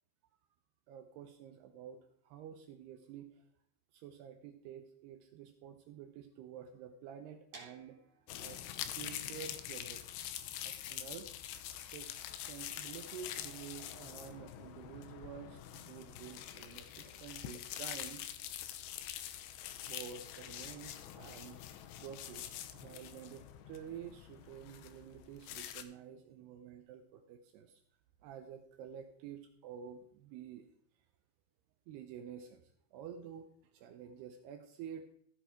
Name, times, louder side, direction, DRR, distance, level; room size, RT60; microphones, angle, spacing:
voice 1, 0.9-3.4 3.9-8.0 8.4-10.1 10.6-12.2 12.4-18.5 19.9-21.6 22.0-27.8 28.2-30.7 31.9-35.1, right 8 dB, 80° right, 7 dB, 2.4 m, -50 dB
sound 1, 7.5-13.3, right 3 dB, 35° right, 3.5 m, -60 dB
sound 2, 8.3-25.8, left 11 dB, 80° left, 2.6 m, -45 dB
14.5 x 6.9 x 4.5 m, 0.68 s
omnidirectional pair, 5.6 m